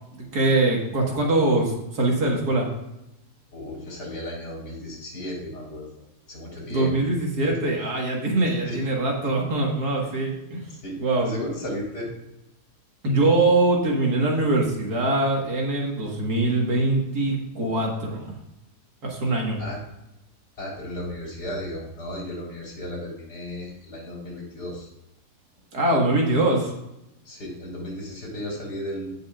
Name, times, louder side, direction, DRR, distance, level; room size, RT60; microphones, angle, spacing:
voice 1, 0.1-2.7 6.7-10.6 11.0-11.3 13.0-18.3 19.0-19.6 25.7-26.7, right 2 dB, 70° right, -1 dB, 2.3 m, -23 dB
voice 2, 3.5-5.9 6.3-6.9 7.4-7.5 8.7-8.9 10.0-10.1 10.8-11.0 11.2-12.1 19.6-19.8 20.6-24.9 27.3-29.1, left 1 dB, 80° left, -4 dB, 4.1 m, -34 dB
16.5 x 5.5 x 2.5 m, 0.90 s
omnidirectional pair, 1.8 m